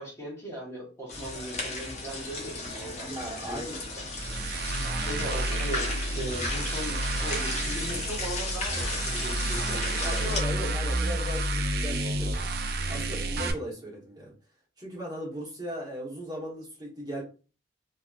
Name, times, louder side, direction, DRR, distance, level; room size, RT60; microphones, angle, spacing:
voice 1, 0.0-3.1 3.4-3.6 4.2-10.9, equal, 15° left, -4 dB, 1.1 m, -39 dB
sound 1, 1.1-10.4, left 2 dB, 40° left, 0.8 m, -35 dB
voice 2, 3.0-3.8 9.9-12.4 12.8-14.3 14.8-17.2, equal, 25° right, -5 dB, 1.1 m, -37 dB
sound 2, 4.1-13.5, right 2 dB, 60° right, 0.5 m, -30 dB
2.8 x 2.6 x 2.4 m, 0.35 s
head